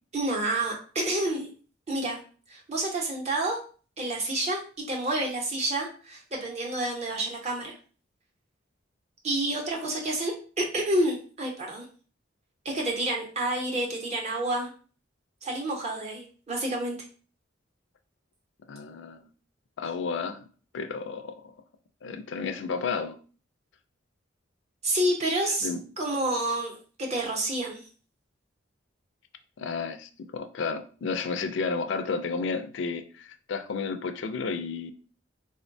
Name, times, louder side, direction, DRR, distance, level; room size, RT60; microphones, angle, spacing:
voice 1, 0.1-1.5 1.9-2.2 2.5-3.6 4.0-4.6 4.9-7.7 9.2-11.8 12.6-14.7 15.4-17.0 24.8-25.7 26.0-27.8, right 1 dB, 35° right, -1 dB, 0.7 m, -29 dB
voice 2, 18.7-19.3 19.8-20.4 20.7-21.5 22.0-23.2 25.4-25.8 29.6-34.9, left 4 dB, 65° left, 7 dB, 0.3 m, -32 dB
3.7 x 2.1 x 2.6 m, 0.39 s
head